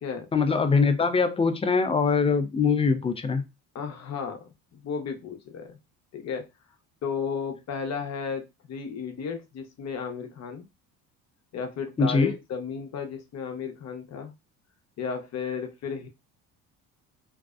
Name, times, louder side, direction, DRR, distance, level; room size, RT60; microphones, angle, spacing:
voice 1, 0.3-3.4 12.0-12.3, left 4 dB, 15° left, 0.4 m, -23 dB
voice 2, 3.7-5.8 6.1-6.5 7.0-10.6 11.5-14.3 15.0-16.1, left 6 dB, 50° left, 0.7 m, -34 dB
2.6 x 2.0 x 2.3 m
supercardioid pair, 85°, 34 cm